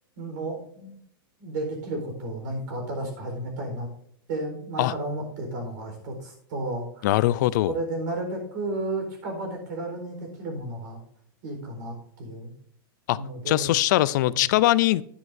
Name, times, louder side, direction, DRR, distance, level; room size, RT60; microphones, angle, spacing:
voice 1, 0.2-1.0 1.4-3.9 4.3-7.1 7.7-11.0 11.4-12.5 13.1-13.8 14.2-14.4, right 2 dB, 55° right, 3 dB, 4.2 m, -33 dB
voice 2, 7.0-7.7 13.1-13.2 13.5-15.0, left 16 dB, 55° left, 18 dB, 0.4 m, -21 dB
11.0 x 10.0 x 2.7 m, 0.68 s
supercardioid pair, 160°, 12 cm